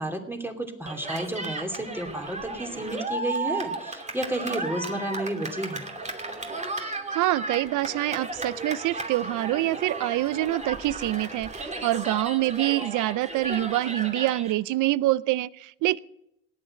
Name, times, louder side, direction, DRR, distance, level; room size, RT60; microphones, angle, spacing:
voice 1, 0.0-5.8, right 1 dB, 5° right, 4 dB, 2.7 m, -32 dB
Cheering, 0.9-14.5, right 2 dB, 25° right, 2.6 m, -34 dB
voice 2, 6.8-16.0, right 16 dB, 85° right, 20 dB, 0.6 m, -26 dB
17.5 x 8.9 x 8.7 m, 0.81 s
cardioid pair, 90°, 30 cm